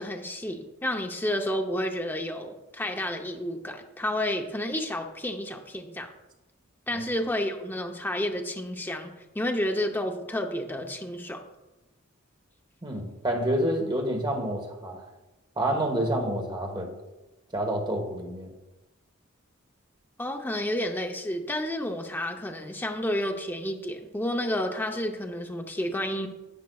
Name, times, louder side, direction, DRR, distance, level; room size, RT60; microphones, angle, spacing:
voice 1, 0.0-6.1 6.9-11.4 20.2-26.3, left 1 dB, 10° left, 3 dB, 0.6 m, -30 dB
voice 2, 12.8-15.0 15.6-16.9 17.5-18.5, right 1 dB, 20° right, 2 dB, 1.2 m, -28 dB
10.5 x 8.5 x 2.3 m, 1.0 s
head